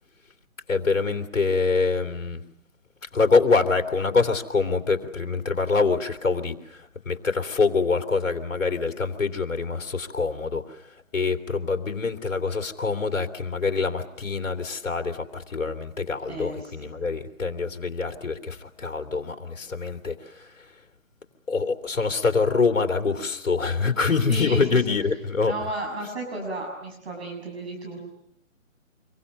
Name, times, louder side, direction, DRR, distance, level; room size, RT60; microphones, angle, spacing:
voice 1, 0.7-2.4 3.0-20.7 21.5-25.5, left 4 dB, 65° left, 6 dB, 3.0 m, -25 dB
voice 2, 16.3-16.9 24.3-24.7 25.5-28.1, right 1 dB, 50° right, 1 dB, 7.1 m, -33 dB
26.5 x 23.0 x 8.1 m, 0.77 s
hypercardioid pair, 160°, 40 cm